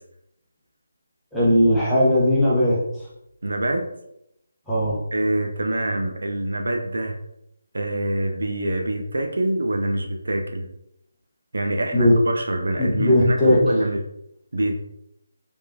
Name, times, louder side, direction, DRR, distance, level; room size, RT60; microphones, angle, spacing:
voice 1, 1.3-2.8 4.7-5.0 11.9-12.1 12.8-13.6, left 1 dB, 5° left, -10 dB, 1.0 m, -18 dB
voice 2, 3.4-3.8 5.1-7.2 7.7-10.7 11.5-14.0 14.5-14.8, right 1 dB, 75° right, 3 dB, 0.5 m, -25 dB
3.5 x 3.2 x 2.7 m, 0.81 s
figure-of-eight pair, 160°, 0 cm